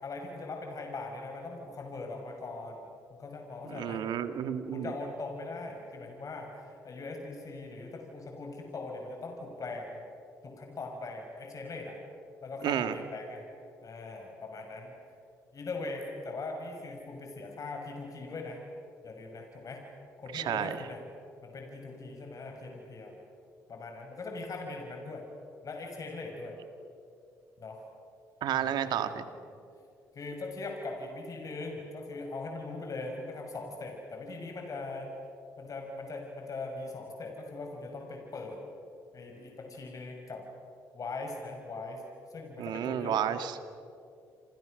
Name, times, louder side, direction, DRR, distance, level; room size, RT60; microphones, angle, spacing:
voice 1, 0.0-2.8 3.1-4.0 4.7-10.0 10.4-12.0 12.4-13.4 13.8-14.9 15.5-18.6 19.0-19.8 20.2-21.0 21.4-23.1 23.7-25.2 25.6-26.6 27.6-27.8 28.6-29.2 30.1-35.1 35.6-38.6 39.1-40.4 40.9-42.0 42.3-43.2, left 3 dB, 50° left, 2 dB, 5.9 m, -40 dB
voice 2, 3.6-4.9 12.6-12.9 20.3-20.8 28.4-29.2 42.6-43.6, right 10 dB, 70° right, 10 dB, 1.8 m, -31 dB
29.5 x 28.0 x 6.5 m, 2.5 s
hypercardioid pair, 55°, 8 cm